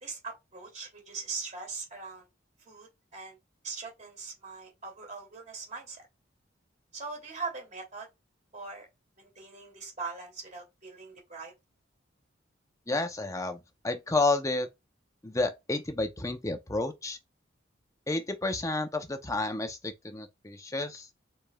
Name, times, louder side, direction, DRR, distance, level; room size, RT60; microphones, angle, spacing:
voice 1, 0.0-2.3 2.6-3.4 3.6-6.1 6.9-8.1 8.5-8.9 9.2-11.5, right 4 dB, 40° right, 2.4 m, -41 dB
voice 2, 12.9-14.7 15.2-17.2 18.1-21.1, left 2 dB, 15° left, 0.7 m, -31 dB
5.0 x 4.3 x 2.3 m
head